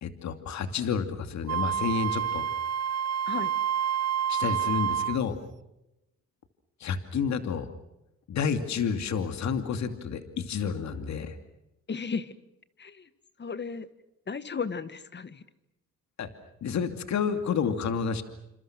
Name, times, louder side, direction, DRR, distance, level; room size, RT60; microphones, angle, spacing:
voice 1, 0.0-2.5 4.3-5.4 6.8-7.7 8.3-11.4 16.2-16.3 16.6-18.2, left 6 dB, 65° left, 8 dB, 2.7 m, -30 dB
Wind instrument woodwind instrument, 1.5-5.2, right 9 dB, 60° right, 0.9 m, -28 dB
voice 2, 11.9-12.3 12.8-13.1 13.4-13.9 14.3-15.4, left 5 dB, 35° left, 13 dB, 1.8 m, -34 dB
28.5 x 27.0 x 6.2 m, 0.90 s
cardioid pair, 90°, 30 cm